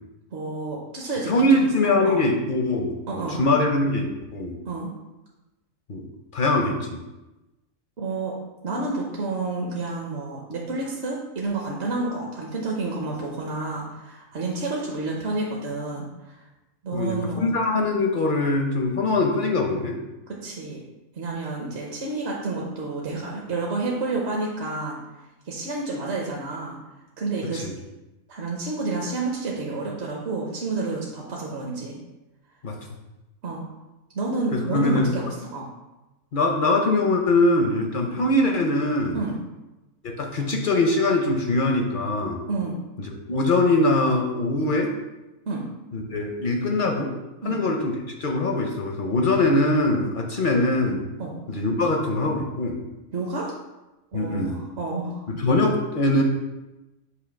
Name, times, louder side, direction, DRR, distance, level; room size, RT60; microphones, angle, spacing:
voice 1, 0.3-1.7 2.0-2.3 3.1-3.4 4.6-4.9 8.0-8.4 8.6-16.4 16.8-17.5 20.3-20.8 21.1-25.0 25.4-26.8 27.2-27.6 28.3-31.9 33.4-33.6 34.1-35.7 38.0-38.2 39.1-39.4 42.5-42.8 45.5-45.6 47.4-47.6 51.2-51.4 53.1-53.6 54.1-55.3, right 3 dB, 55° right, -2 dB, 1.0 m, -30 dB
voice 2, 1.3-4.5 5.9-6.1 6.3-7.0 16.9-20.0 27.5-27.7 32.6-32.8 34.5-35.1 36.3-39.2 40.0-42.4 43.0-44.9 45.9-47.1 47.4-51.1 51.5-52.8 54.1-54.6 55.3-56.2, left 2 dB, 55° left, 2 dB, 0.6 m, -22 dB
6.8 x 2.7 x 5.1 m, 1.0 s
omnidirectional pair, 1.4 m